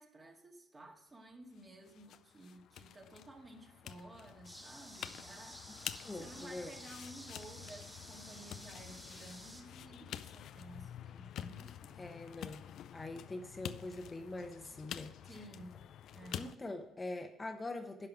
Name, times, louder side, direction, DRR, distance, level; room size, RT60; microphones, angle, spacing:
voice 1, 0.0-5.7 6.1-12.1 15.2-15.8 16.1-16.5, right 1 dB, 25° right, 1.9 m, -54 dB
sound 1, 1.6-16.5, left 10 dB, 60° left, 0.4 m, -48 dB
sound 2, 4.4-9.6, equal, 5° right, 1.9 m, -52 dB
voice 2, 6.0-6.7 12.0-12.6 12.9-15.1 16.4-18.1, left 2 dB, 20° left, 1.0 m, -43 dB
10.5 x 5.7 x 4.8 m
hypercardioid pair, 55°, 0 cm